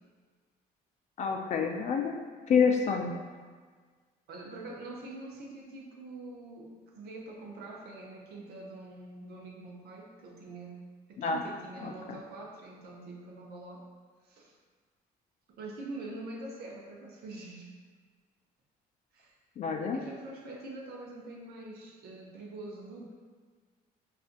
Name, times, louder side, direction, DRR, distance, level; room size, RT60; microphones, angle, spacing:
voice 1, 1.2-2.2 2.5-3.2 11.2-11.4 11.8-12.2 19.6-20.0, left 6 dB, 45° left, 3 dB, 0.4 m, -28 dB
voice 2, 4.3-10.8 11.1-13.9 14.2-14.5 15.5-17.7 19.1-19.4 19.9-23.1, right 2 dB, 70° right, -1 dB, 0.7 m, -44 dB
3.7 x 2.5 x 2.5 m, 1.5 s
cardioid pair, 110°, 17 cm